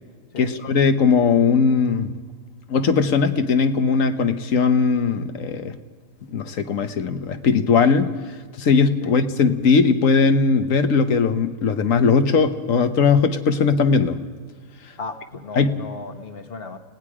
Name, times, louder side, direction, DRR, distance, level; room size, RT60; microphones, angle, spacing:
voice 1, 0.4-2.1 2.7-5.8 6.3-8.1 8.6-14.2 15.6-15.8, left 5 dB, 70° left, 9 dB, 1.4 m, -19 dB
voice 2, 15.0-16.8, left 4 dB, 45° left, 7 dB, 1.5 m, -35 dB
29.5 x 17.5 x 4.9 m, 1.5 s
omnidirectional pair, 1.4 m